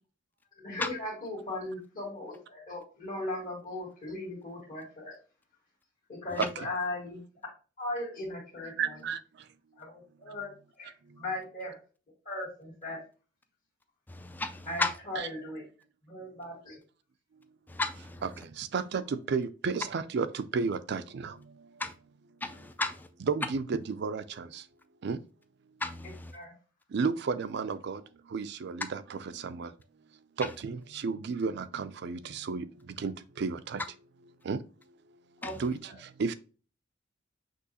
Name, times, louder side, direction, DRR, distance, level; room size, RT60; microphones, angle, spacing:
voice 1, 0.5-5.1 6.1-7.2 7.8-9.0 9.8-10.5 10.8-10.9 11.2-11.8 12.3-13.0 14.7-15.6 16.1-16.8 26.3-26.5 35.4-35.5 35.9-36.0, left 2 dB, 45° left, 1.7 m, -38 dB
voice 2, 8.8-9.2 15.2-15.3 18.2-18.3 18.6-21.3 23.2-24.5 25.0-25.2 26.9-28.0 28.3-29.7 30.4-32.7 33.0-33.1 33.4-33.8 34.5-34.6 35.6-35.8 36.2-36.3, right 5 dB, 60° right, 0.4 m, -32 dB
voice 3, 14.1-14.9 17.7-18.2 21.8-21.9 22.4-23.1 25.8-26.3, left 2 dB, 10° left, 0.3 m, -33 dB
6.1 x 3.0 x 2.8 m
head